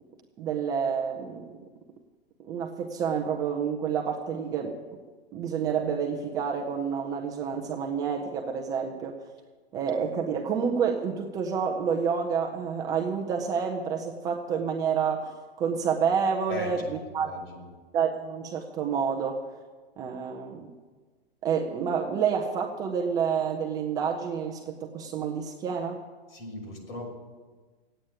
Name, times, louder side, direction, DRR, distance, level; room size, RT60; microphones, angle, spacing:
voice 1, 0.4-1.6 2.5-4.8 5.3-9.2 9.7-16.8 17.1-17.3 17.9-19.4 20.0-20.7 21.4-26.0, right 6 dB, 10° right, 2 dB, 0.5 m, -29 dB
voice 2, 16.5-17.7 26.3-27.1, left 1 dB, 65° left, 0 dB, 6.2 m, -39 dB
16.0 x 8.9 x 9.2 m, 1.4 s
hypercardioid pair, 160°, 31 cm